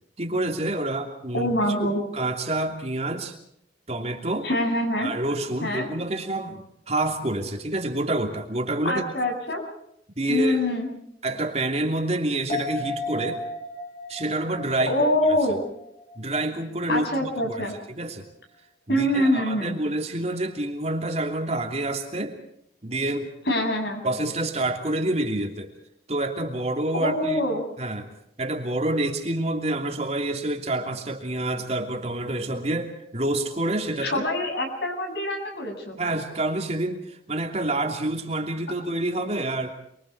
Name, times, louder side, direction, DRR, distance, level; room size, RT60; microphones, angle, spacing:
voice 1, 0.2-1.7 2.1-3.4 3.9-4.5 5.0-9.1 10.2-10.6 11.2-13.4 14.1-14.9 15.3-15.4 16.2-18.3 18.9-22.4 22.8-23.3 24.0-25.7 26.1-27.4 27.8-28.1 28.4-34.3 36.0-39.7, right 2 dB, 35° right, 3 dB, 2.9 m, -28 dB
voice 2, 1.3-2.0 4.4-5.1 5.6-5.9 8.8-9.6 10.3-10.9 14.9-15.6 16.9-17.8 18.9-19.8 23.5-24.0 27.0-27.6 34.0-36.0, left 1 dB, 65° left, 4 dB, 7.4 m, -24 dB
sound 1, 12.5-16.2 16.5-16.6, left 2 dB, 50° left, 6.6 m, -34 dB
29.0 x 23.5 x 4.7 m, 0.74 s
head